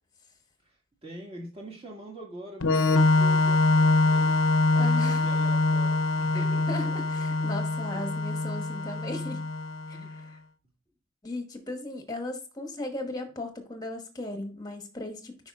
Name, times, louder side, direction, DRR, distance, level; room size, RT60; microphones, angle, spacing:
voice 1, 1.0-6.9 7.3-7.5 7.9-8.0 9.9-10.1, right 1 dB, 25° right, -1 dB, 1.9 m, -44 dB
Organ, 2.6-10.1, left 2 dB, 75° left, 0.7 m, -24 dB
voice 2, 4.7-5.2 6.3-9.5 9.9-10.4 11.2-15.4, left 2 dB, 15° left, 5 dB, 1.1 m, -37 dB
8.7 x 5.4 x 2.4 m, 0.34 s
head